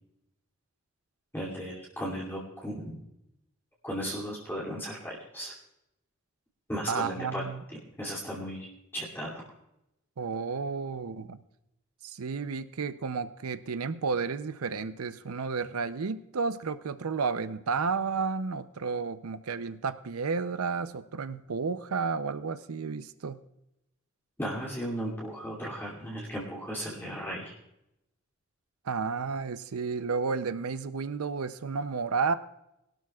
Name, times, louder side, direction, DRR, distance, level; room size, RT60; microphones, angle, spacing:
voice 1, 1.3-3.0 3.8-5.5 6.7-7.5 8.0-8.7 8.9-9.4 24.4-27.5, equal, 10° left, -6 dB, 2.6 m, -35 dB
voice 2, 6.9-7.6 10.2-11.4 12.0-23.4 28.8-32.3, right 5 dB, 90° right, 12 dB, 0.6 m, -32 dB
22.0 x 12.5 x 2.4 m, 0.85 s
head